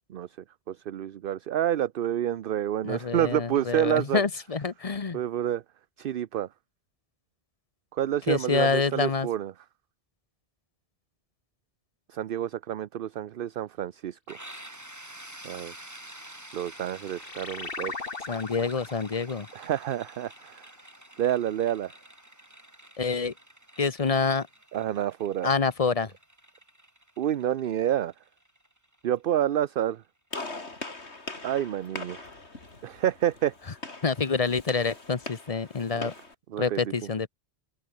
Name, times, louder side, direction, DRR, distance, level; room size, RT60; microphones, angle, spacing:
voice 1, 0.7-4.2 5.1-5.6 6.0-6.5 7.9-9.5 12.1-14.4 15.4-15.7 16.5-18.1 19.5-20.7 21.2-21.9 24.7-25.5 27.2-28.1 29.0-30.0 31.4-32.3 32.8-33.5 36.0-36.1 36.5-36.8, right 11 dB, 60° right, 0.8 m, -28 dB
voice 2, 2.8-5.2 8.3-9.3 18.3-19.5 23.0-23.3 23.8-24.5 25.4-26.1 34.0-36.1 36.6-37.3, left 4 dB, 35° left, 1.0 m, -27 dB
sound 1, 14.3-29.9, right 1 dB, 15° right, 2.6 m, -49 dB
sound 2, 16.6-21.4, left 4 dB, 55° left, 2.2 m, -41 dB
Gunshot gunfire, 30.3-36.3, left 2 dB, 80° left, 3.9 m, -41 dB
open air
omnidirectional pair, 1.1 m